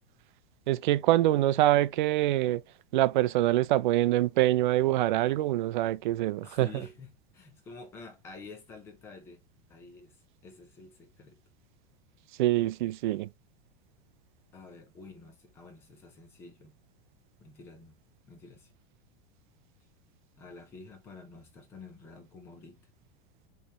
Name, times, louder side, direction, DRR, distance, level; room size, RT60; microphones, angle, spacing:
voice 1, 0.7-2.6 2.9-6.7 12.4-13.3, right 15 dB, 55° right, 0.4 m, -25 dB
voice 2, 6.4-9.4 9.7-11.4 14.5-16.8 17.4-17.9 18.3-18.7 20.4-22.9, left 3 dB, 10° left, 0.4 m, -49 dB
5.3 x 3.2 x 2.9 m
supercardioid pair, 180°, 30 cm